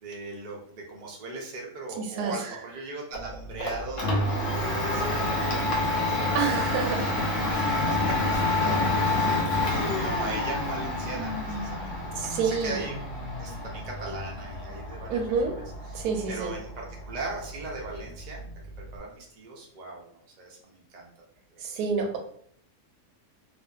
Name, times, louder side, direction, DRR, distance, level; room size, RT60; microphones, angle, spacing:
voice 1, 0.0-6.6 6.9-7.2 7.5-13.0 13.4-16.0 16.3-18.5 18.9-21.1 21.5-21.6, right 3 dB, 65° right, -1 dB, 0.4 m, -39 dB
voice 2, 2.0-2.3 6.3-7.1 12.2-12.8 15.1-15.5 15.9-16.5 21.6-22.2, right 5 dB, 90° right, 3 dB, 1.1 m, -28 dB
Domestic sounds home sounds, 3.1-19.0, left 2 dB, 65° left, 0.8 m, -29 dB
2.5 x 2.5 x 2.2 m, 0.62 s
omnidirectional pair, 1.6 m